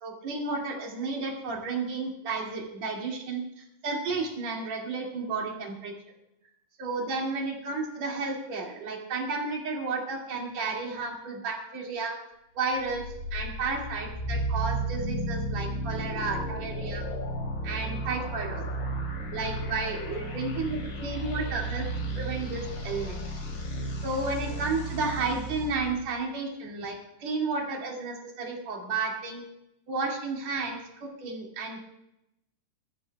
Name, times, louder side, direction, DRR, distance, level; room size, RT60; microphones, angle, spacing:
voice 1, 0.0-5.9 6.8-12.1 12.5-13.0 13.3-17.0 17.6-18.7 19.3-21.9 22.1-23.2 24.0-29.4 29.9-30.8 31.2-31.9, right 3 dB, 45° right, -1 dB, 3.2 m, -32 dB
sound 1, 12.6-25.9, right 1 dB, 85° left, 5.4 m, -33 dB
21.5 x 14.0 x 2.3 m, 0.84 s
omnidirectional pair, 4.8 m